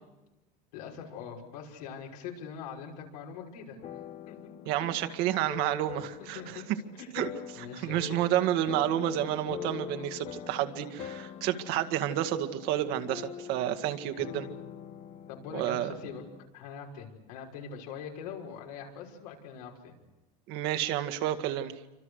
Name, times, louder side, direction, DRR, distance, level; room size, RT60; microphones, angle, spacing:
voice 1, 0.7-3.8 4.3-4.5 4.8-5.1 6.3-6.6 7.0-7.1 7.5-8.2 15.3-16.2 16.5-20.0, left 6 dB, 90° left, 0 dB, 6.0 m, -43 dB
sound 1, 3.8-16.5, left 10 dB, 35° left, 1.1 m, -44 dB
voice 2, 4.7-6.4 7.1-14.5 15.5-15.9 20.5-21.7, right 12 dB, 55° right, 8 dB, 2.0 m, -30 dB
28.5 x 25.5 x 6.5 m, 1.0 s
supercardioid pair, 150°, 19 cm